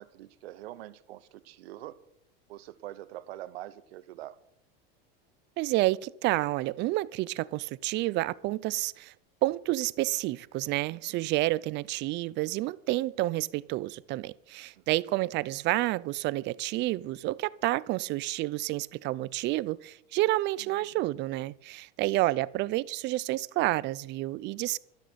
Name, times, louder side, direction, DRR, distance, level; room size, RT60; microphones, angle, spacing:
voice 1, 0.0-2.0 2.5-4.4 10.9-11.2 14.8-15.0 20.6-20.9, right 14 dB, 90° right, 0.9 m, -45 dB
voice 2, 5.6-9.1 9.4-24.8, right 18 dB, 40° right, 0.4 m, -29 dB
13.0 x 6.3 x 9.1 m
supercardioid pair, 130°, 30 cm